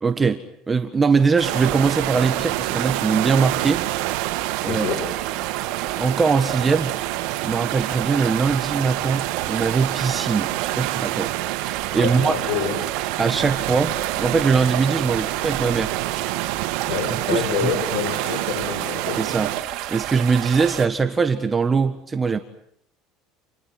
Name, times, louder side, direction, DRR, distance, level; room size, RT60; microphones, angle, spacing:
voice 1, 0.0-3.8 4.6-4.9 5.9-6.9 7.4-11.3 11.9-12.5 13.2-15.9 17.1-17.7 19.2-19.5 19.9-22.4, right 5 dB, 20° right, 7 dB, 1.6 m, -21 dB
Water over a Tree Limb, 1.4-20.9, right 14 dB, 60° right, 4.3 m, -31 dB
sound 1, 1.4-19.6, right 18 dB, 85° right, 1.8 m, -28 dB
voice 2, 4.7-5.0 12.0-12.8 16.8-19.2, left 7 dB, 80° left, 5 dB, 7.4 m, -27 dB
30.0 x 29.0 x 6.0 m, 0.70 s
cardioid pair, 140°, 0 cm